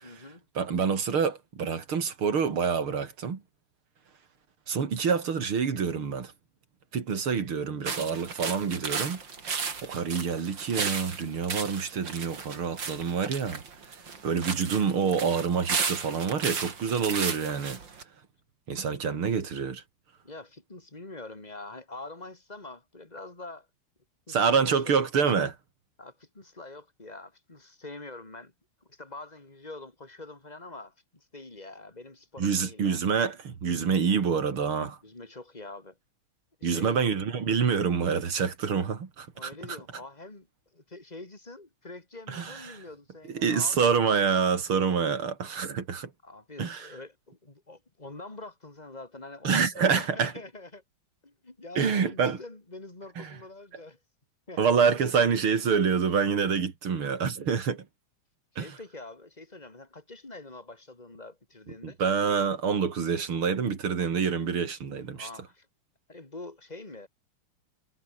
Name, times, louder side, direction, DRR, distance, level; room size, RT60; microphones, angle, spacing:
voice 1, 0.0-0.4 19.1-19.2 20.2-23.7 24.3-25.0 26.0-28.5 28.9-33.1 35.0-36.0 36.6-37.0 39.3-40.5 40.7-44.0 46.2-50.8 51.2-54.0 54.5-54.6 58.6-62.0 65.1-65.7 66.1-67.1, left 2 dB, 20° left, 3.7 m, -45 dB
voice 2, 0.6-3.4 4.7-6.3 6.9-9.2 9.8-13.6 14.2-17.8 18.7-19.8 24.3-25.6 32.4-35.0 36.6-39.5 42.3-42.8 43.3-46.1 46.6-46.9 49.4-50.3 51.8-52.4 53.2-53.3 54.6-57.8 58.6-58.7 61.8-65.3, right 6 dB, 85° right, 3.5 m, -27 dB
sound 1, 7.9-18.0, right 5 dB, 60° right, 3.5 m, -35 dB
omnidirectional pair, 2.3 m